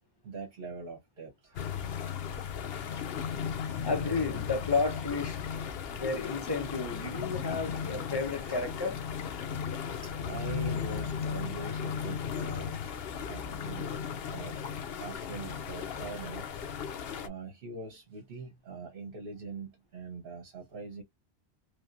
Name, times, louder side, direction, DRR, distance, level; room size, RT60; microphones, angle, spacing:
voice 1, 0.2-1.6 2.7-3.1 7.8-7.9 8.5-8.7 10.0-12.8 13.3-13.9 14.3-14.6 15.0-16.5 16.9-21.0, right 4 dB, 60° right, 1.1 m, -43 dB
sound 1, 1.5-17.3, left 7 dB, 70° left, 0.8 m, -36 dB
voice 2, 3.8-5.4 6.0-9.0, left 4 dB, 25° left, 1.0 m, -32 dB
3.2 x 2.7 x 2.5 m
omnidirectional pair, 1.1 m